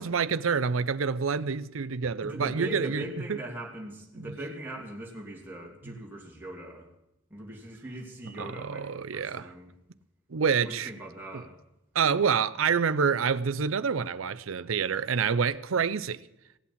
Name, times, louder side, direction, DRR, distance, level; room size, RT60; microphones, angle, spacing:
voice 1, 0.0-3.0 3.3-3.4 4.2-4.3 5.9-6.0 8.4-9.5 10.3-10.9 11.3-11.4 11.9-16.2, right 6 dB, 85° right, 0.6 m, -27 dB
voice 2, 2.2-6.9 7.3-9.7 10.6-11.6, right 1 dB, 10° right, 2.8 m, -40 dB
17.0 x 8.4 x 8.6 m
head